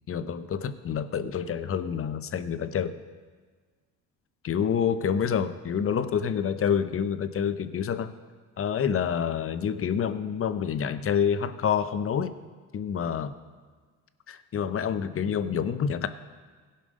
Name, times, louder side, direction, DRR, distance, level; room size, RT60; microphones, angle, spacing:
voice 1, 0.1-3.0 4.4-8.1 8.6-12.3 12.7-13.3 14.3-16.1, left 7 dB, 40° left, 11 dB, 0.7 m, -27 dB
16.5 x 5.5 x 5.2 m, 1.5 s
supercardioid pair, 70°, 34 cm